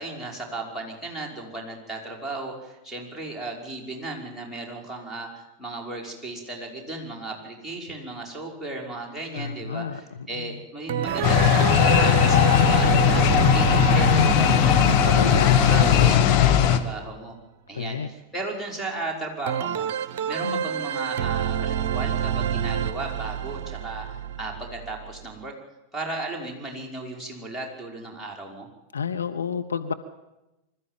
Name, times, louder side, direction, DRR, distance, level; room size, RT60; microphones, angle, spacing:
voice 1, 0.0-13.2 13.5-15.4 15.7-17.3 17.7-25.5 25.9-28.7, right 2 dB, 5° left, 2 dB, 5.5 m, -35 dB
voice 2, 9.3-10.0 10.4-10.5 15.1-16.2 17.7-18.1 20.4-20.6 28.9-29.9, left 6 dB, 70° left, 7 dB, 1.1 m, -30 dB
sound 1, 10.9-16.7 19.5-25.4, right 9 dB, 50° right, 0.7 m, -29 dB
sound 2, 11.1-16.2, right 8 dB, 35° right, 1.2 m, -31 dB
sound 3, 11.2-16.8, left 10 dB, 40° left, 1.7 m, -18 dB
25.0 x 13.5 x 9.3 m, 0.99 s
figure-of-eight pair, 90°, 0 cm